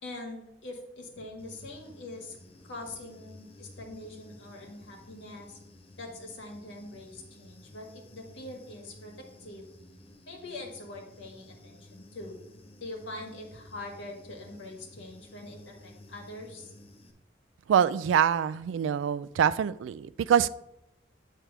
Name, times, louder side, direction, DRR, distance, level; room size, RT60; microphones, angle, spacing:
voice 1, 0.0-5.6 6.0-9.7 10.2-12.4 12.8-16.7, left 2 dB, 75° left, 0 dB, 1.7 m, -43 dB
Human voice / Buzz, 1.4-17.1, left 1 dB, 30° left, 0.8 m, -53 dB
voice 2, 17.7-20.5, right 8 dB, 85° right, 15 dB, 0.3 m, -25 dB
8.9 x 3.4 x 6.0 m, 0.85 s
head